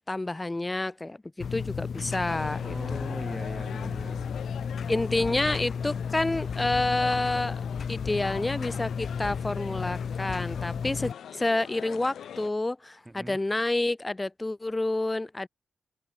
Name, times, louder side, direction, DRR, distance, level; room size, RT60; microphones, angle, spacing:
voice 1, 0.1-3.2 4.9-7.6 7.9-15.5, left 2 dB, 20° left, 4.5 m, -29 dB
sound 1, 1.4-11.1, left 6 dB, 65° left, 5.8 m, -33 dB
sound 2, 2.3-12.5, left 9 dB, 90° left, 7.0 m, -43 dB
voice 2, 2.6-4.3 5.3-5.6 13.1-13.4, right 1 dB, 15° right, 2.8 m, -40 dB
cardioid pair, 85°, 0 cm